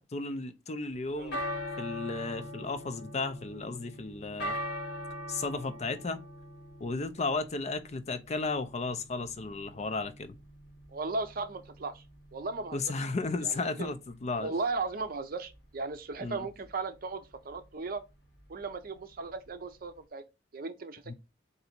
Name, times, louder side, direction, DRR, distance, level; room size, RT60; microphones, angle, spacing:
voice 1, 0.0-1.4 1.8-4.6 5.3-6.2 6.8-10.4 12.7-14.5 16.2-16.4 21.1-21.2, left 3 dB, 40° left, 0.4 m, -34 dB
sound 1, 0.9-20.0, equal, 65° left, 1.4 m, -43 dB
voice 2, 10.9-12.0 12.3-12.8 13.4-13.9 14.4-18.0 18.5-20.2 20.5-21.1, right 3 dB, 55° right, 0.6 m, -36 dB
3.9 x 2.6 x 4.3 m
head